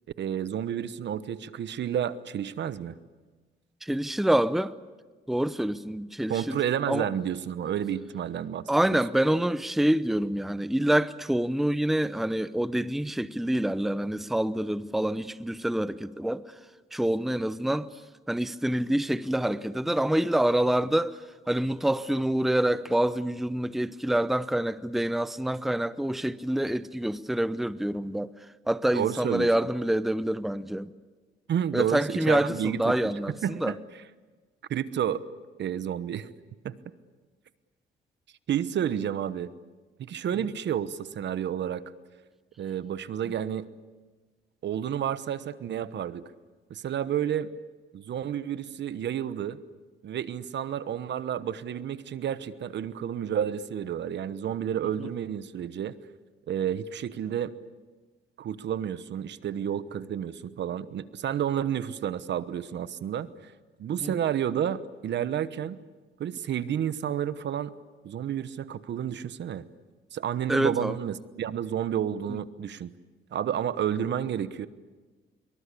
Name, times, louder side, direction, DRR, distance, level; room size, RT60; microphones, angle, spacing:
voice 1, 0.2-3.0 6.3-9.0 28.9-29.5 31.5-32.9 33.4-33.8 34.7-35.2 35.6-36.3 36.6-36.8 38.5-39.5 40.1-41.8 42.6-43.7 44.6-46.2 46.7-47.5 47.9-49.6 50.0-56.0 56.5-57.5 58.4-63.5 63.8-65.8 66.2-67.7 68.0-69.6 70.1-72.9 73.3-74.7, right 9 dB, 65° right, 1.1 m, -30 dB
voice 2, 3.8-4.7 5.3-6.6 6.9-7.1 8.7-16.4 16.9-17.9 18.3-21.2 21.5-28.3 28.7-30.9 31.7-33.8 55.0-55.1 64.0-64.1 70.5-71.0, right 1 dB, ahead, 0.7 m, -26 dB
24.5 x 23.5 x 8.4 m
cardioid pair, 90°, 20 cm